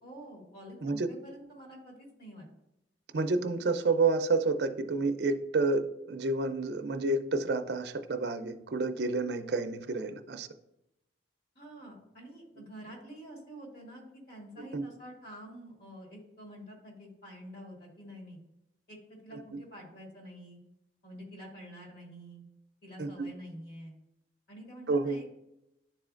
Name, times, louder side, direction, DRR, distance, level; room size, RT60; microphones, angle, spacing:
voice 1, 0.0-2.5 11.6-18.4 18.9-20.6 21.0-22.4 22.8-24.0 24.5-25.4, equal, 55° left, -2 dB, 2.2 m, -48 dB
voice 2, 3.1-10.5 14.7-14.9 23.0-23.3 24.9-25.2, right 3 dB, 60° right, 9 dB, 0.5 m, -29 dB
10.5 x 4.1 x 2.5 m, 0.87 s
head